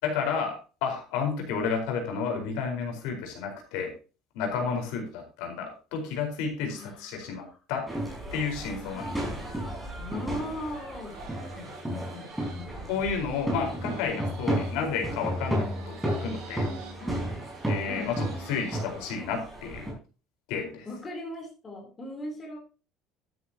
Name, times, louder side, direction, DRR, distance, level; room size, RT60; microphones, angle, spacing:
voice 1, 0.0-3.9 4.3-7.9 8.3-9.3 12.9-16.7 17.7-19.9 20.5-20.9, left 5 dB, 75° left, 3 dB, 4.6 m, -31 dB
voice 2, 6.7-7.4 8.6-9.6 10.0-13.0 17.0-17.3 17.9-18.1 20.9-22.6, left 1 dB, 15° left, 1 dB, 3.5 m, -40 dB
sound 1, 7.9-19.9, right 1 dB, 5° right, 4.6 m, -33 dB
sound 2, 10.4-19.1, right 9 dB, 80° right, 5.8 m, -50 dB
12.5 x 9.7 x 2.9 m, 0.34 s
cardioid pair, 170°, 0 cm